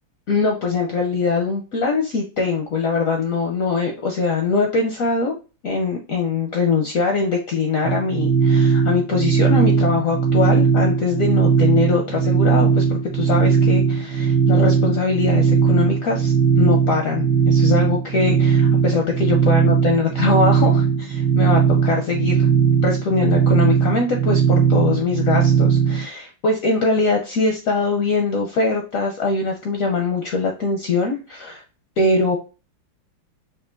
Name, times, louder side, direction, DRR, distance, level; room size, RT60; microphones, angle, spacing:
voice 1, 0.3-5.3 5.6-22.5 22.8-31.6 32.0-32.4, left 4 dB, 70° left, 2 dB, 0.8 m, -22 dB
sound 1, 7.8-26.0, right 7 dB, 60° right, 1.4 m, -18 dB
5.2 x 2.4 x 2.5 m, 0.33 s
omnidirectional pair, 2.1 m